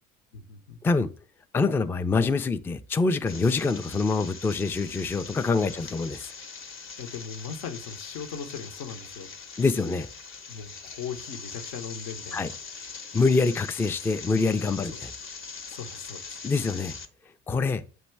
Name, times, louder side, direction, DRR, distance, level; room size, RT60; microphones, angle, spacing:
voice 1, 0.3-0.8 5.7-5.9 7.0-9.3 10.5-12.6 14.6-15.0 15.7-16.4, left 6 dB, 60° left, 1.0 m, -39 dB
voice 2, 1.5-6.3 9.6-10.1 12.3-12.5 13.1-15.1 16.4-17.0 17.5-17.8, left 4 dB, 5° left, 0.3 m, -25 dB
sound 1, 3.3-17.1, left 5 dB, 30° left, 0.9 m, -42 dB
7.9 x 3.0 x 4.4 m
figure-of-eight pair, 55°, 39 cm